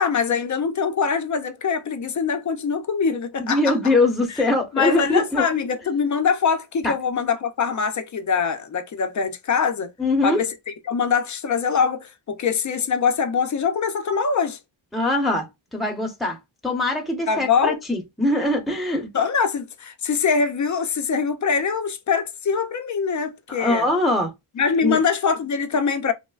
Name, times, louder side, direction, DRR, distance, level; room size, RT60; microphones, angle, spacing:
voice 1, 0.0-3.7 4.7-9.9 10.2-14.6 17.3-17.8 19.1-23.9 24.6-26.1, left 6 dB, 40° left, 0.4 m, -23 dB
voice 2, 3.4-5.4 6.8-6.9 10.0-10.4 14.9-15.5 15.7-16.4 16.6-19.1 23.5-24.3 24.8-25.0, left 2 dB, ahead, 0.7 m, -22 dB
3.1 x 2.0 x 2.3 m
cardioid pair, 100°, 48 cm